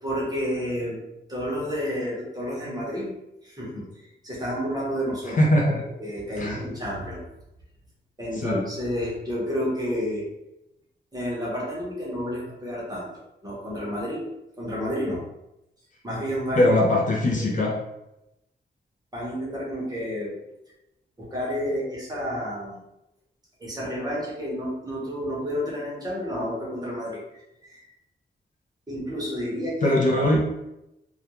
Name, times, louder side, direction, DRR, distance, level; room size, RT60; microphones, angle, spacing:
voice 1, 0.0-1.0 1.3-5.4 6.0-7.2 8.2-10.2 11.1-13.1 13.4-14.3 14.6-15.2 16.0-16.7 17.3-17.6 19.1-20.4 21.2-22.8 23.6-27.8 28.9-30.0, equal, 20° right, -5 dB, 0.8 m, -30 dB
voice 2, 5.3-5.8 6.4-6.6 8.4-8.6 16.6-17.8 29.8-30.4, left 1 dB, 45° left, -2 dB, 0.4 m, -21 dB
2.3 x 2.2 x 2.9 m, 0.88 s
wide cardioid pair, 165°, 19 cm